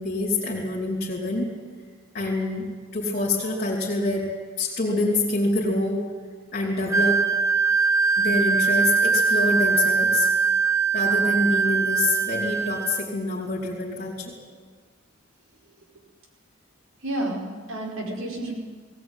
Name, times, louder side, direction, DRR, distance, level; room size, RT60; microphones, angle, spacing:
voice 1, 0.0-1.5 2.1-4.3 4.6-6.1 6.5-7.3 8.2-10.3 10.9-14.4, left 2 dB, 40° left, -4 dB, 4.2 m, -26 dB
Wind instrument woodwind instrument, 6.9-13.0, right 5 dB, 15° right, 0.8 m, -22 dB
voice 2, 17.0-18.6, right 1 dB, 75° right, 1 dB, 4.9 m, -30 dB
20.5 x 18.0 x 9.5 m, 1.5 s
head